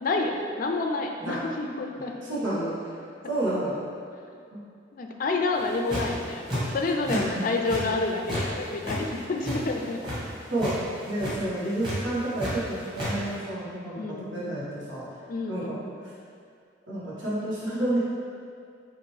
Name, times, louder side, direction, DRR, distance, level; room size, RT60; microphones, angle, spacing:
voice 1, 0.0-2.1 4.9-6.5 6.7-10.0 11.3-11.4 14.0-14.6 15.3-15.8, left 3 dB, 45° left, 3 dB, 0.4 m, -29 dB
voice 2, 2.3-2.9 3.3-3.8 4.5-4.6 7.1-7.2 10.5-10.7 11.1-15.0 15.5-15.8 16.9-18.0, right 1 dB, 90° right, -9 dB, 1.4 m, -30 dB
sound 1, 5.6-6.2 6.5-7.2 7.5-8.5 8.7-10.2 10.5-10.8 11.1-11.3 11.8-12.5 12.8-13.1, equal, 25° right, 1.3 m, -31 dB
5.8 x 2.6 x 3.2 m, 2.3 s
head